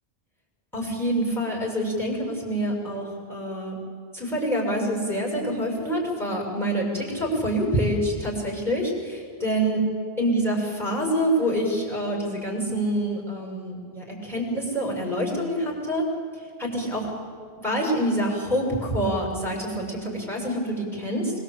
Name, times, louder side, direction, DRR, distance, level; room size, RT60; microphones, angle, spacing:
voice 1, 0.7-3.8 4.1-9.8 10.2-16.0 16.6-17.1 17.6-21.3, right 1 dB, ahead, -2 dB, 6.8 m, -26 dB
25.5 x 22.0 x 8.4 m, 2.1 s
omnidirectional pair, 1.1 m